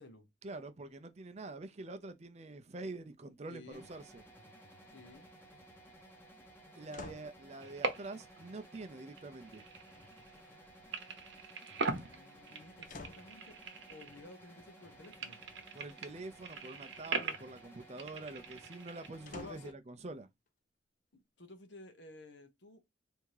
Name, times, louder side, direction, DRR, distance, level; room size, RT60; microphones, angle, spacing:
voice 1, 0.4-4.2 6.7-9.6 15.7-20.3, right 2 dB, 35° right, 0.5 m, -46 dB
voice 2, 3.5-3.9 4.9-5.3 12.0-15.4 19.3-19.7 21.1-22.8, left 2 dB, 75° left, 1.0 m, -54 dB
sound 1, 3.7-19.7, right 1 dB, 10° left, 0.9 m, -57 dB
sound 2, 6.9-7.4 9.9-10.6 11.5-12.0 12.9-13.4 16.9-17.4 19.3-19.8 20.5-20.6, left 3 dB, 45° left, 0.6 m, -50 dB
sound 3, 7.6-8.4 8.6-10.6 10.9-14.5 14.8-19.1, right 4 dB, 85° right, 0.9 m, -41 dB
3.5 x 2.8 x 4.7 m
head